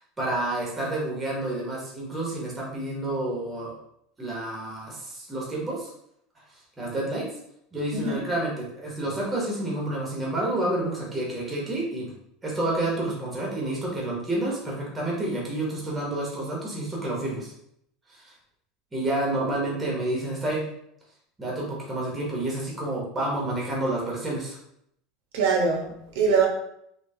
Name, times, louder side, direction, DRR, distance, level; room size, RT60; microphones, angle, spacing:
voice 1, 0.0-3.7 4.2-5.9 6.8-7.2 7.7-12.1 12.4-17.5 18.1-18.3 18.9-20.6 21.4-24.6, right 1 dB, 10° right, -4 dB, 0.8 m, -29 dB
voice 2, 25.3-26.5, right 5 dB, 75° right, 0 dB, 0.9 m, -23 dB
3.3 x 2.8 x 2.6 m, 0.73 s
cardioid pair, 175°, 0 cm